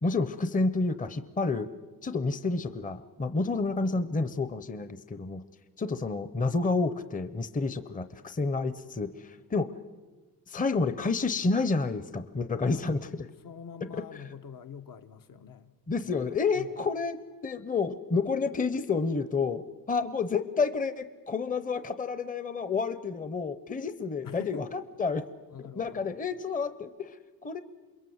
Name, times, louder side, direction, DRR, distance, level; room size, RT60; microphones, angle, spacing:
voice 1, 0.0-1.7 2.0-5.4 5.8-9.7 10.5-13.3 15.9-17.2 17.4-25.3 25.6-27.2 27.4-27.6, left 4 dB, 25° left, 0.8 m, -29 dB
voice 2, 13.4-15.7 16.5-16.7 24.2-24.7 25.5-26.1, left 7 dB, 65° left, 1.3 m, -44 dB
28.0 x 22.0 x 8.0 m
wide cardioid pair, 175°, 35 cm